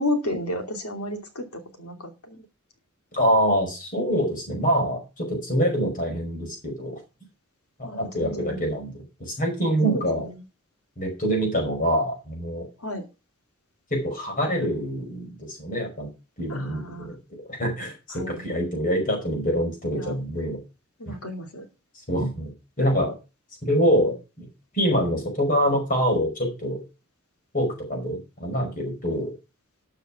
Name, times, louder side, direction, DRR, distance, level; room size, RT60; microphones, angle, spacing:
voice 1, 0.0-2.4 7.8-8.7 9.8-10.4 12.8-13.0 16.5-17.1 18.1-18.5 19.9-20.1 21.0-21.6 29.1-29.2, left 1 dB, 85° left, 5 dB, 2.8 m, -32 dB
voice 2, 3.1-7.0 7.8-10.3 11.0-12.6 13.9-16.1 16.4-20.6 21.1-21.2 22.1-22.5 22.8-23.1 23.6-24.5 24.7-26.8 27.5-29.3, equal, 40° left, 2 dB, 5.1 m, -25 dB
13.0 x 6.0 x 5.8 m, 0.30 s
head